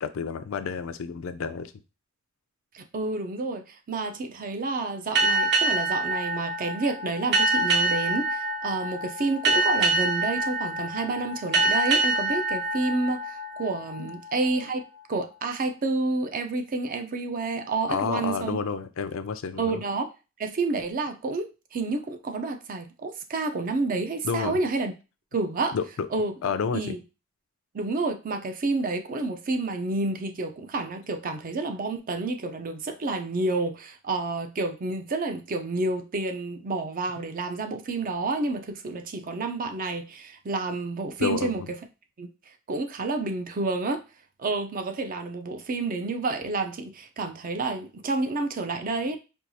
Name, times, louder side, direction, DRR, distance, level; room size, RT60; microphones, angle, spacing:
voice 1, 0.0-1.7 14.0-14.1 17.9-19.8 24.2-24.6 25.7-26.1 26.4-27.0 41.2-41.7, left 6 dB, 70° left, 0.4 m, -30 dB
voice 2, 2.7-14.8 15.1-18.6 19.6-20.1 20.4-24.9 25.3-25.8 26.1-26.3 26.7-27.0 27.7-41.6 42.2-42.3 42.7-44.0 44.4-49.2, right 3 dB, 40° right, 0.5 m, -29 dB
sound 1, 5.2-14.3, right 2 dB, 55° right, 1.0 m, -26 dB
4.5 x 2.3 x 2.7 m
head